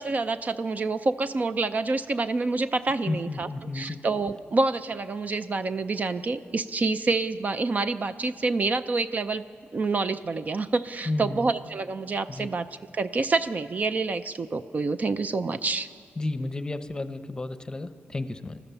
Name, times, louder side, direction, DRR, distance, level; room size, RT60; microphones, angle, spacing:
voice 1, 0.0-3.5 3.7-9.4 9.7-12.7 12.9-15.9, right 3 dB, 35° right, 11 dB, 0.5 m, -27 dB
voice 2, 3.0-4.0 11.1-11.5 12.3-12.5 16.2-18.6, left 2 dB, 20° left, 11 dB, 0.8 m, -32 dB
29.0 x 14.0 x 6.9 m, 2.2 s
wide cardioid pair, 135°, 4 cm